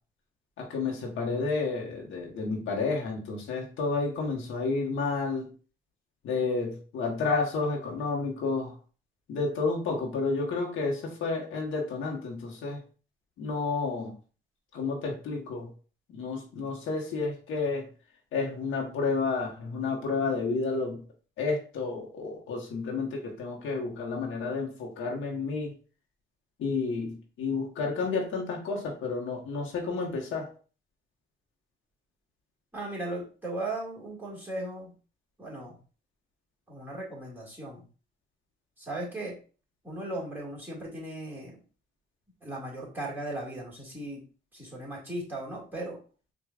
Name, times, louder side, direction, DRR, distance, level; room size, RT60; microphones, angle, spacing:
voice 1, 0.6-5.5 6.2-8.7 9.3-12.8 13.4-14.1 14.7-15.7 16.1-17.9 18.3-21.0 21.4-25.7 26.6-30.5, left 4 dB, 80° left, 0 dB, 1.1 m, -31 dB
voice 2, 32.7-34.9 35.4-35.8 36.7-37.9 38.8-39.4 39.8-41.6 42.4-44.2 44.5-46.0, right 1 dB, 10° right, -4 dB, 1.9 m, -37 dB
4.8 x 2.4 x 2.4 m, 0.38 s
cardioid pair, 90°, 20 cm